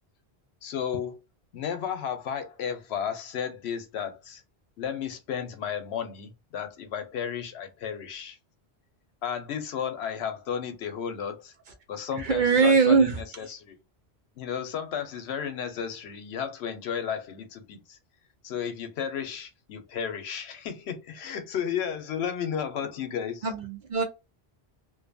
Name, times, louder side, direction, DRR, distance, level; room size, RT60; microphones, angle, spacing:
voice 1, 0.6-1.2 1.5-4.4 4.8-8.4 9.2-11.5 11.9-13.8 14.4-18.0 18.4-23.5, left 8 dB, 85° left, 0.9 m, -33 dB
voice 2, 12.2-13.2 23.4-24.0, right 5 dB, 60° right, 0.6 m, -21 dB
2.6 x 2.2 x 2.5 m
omnidirectional pair, 1.1 m